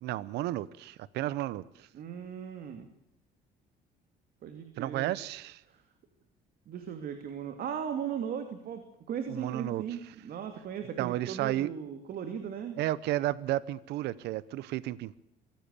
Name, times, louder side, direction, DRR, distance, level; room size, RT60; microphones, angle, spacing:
voice 1, 0.0-1.9 4.8-5.6 9.3-9.8 11.0-11.7 12.8-15.2, right 15 dB, 80° right, 0.9 m, -32 dB
voice 2, 1.9-2.9 4.4-5.2 5.7-5.8 6.7-12.8, right 8 dB, 60° right, 2.7 m, -37 dB
24.5 x 16.0 x 8.4 m
cardioid pair, 110°, 17 cm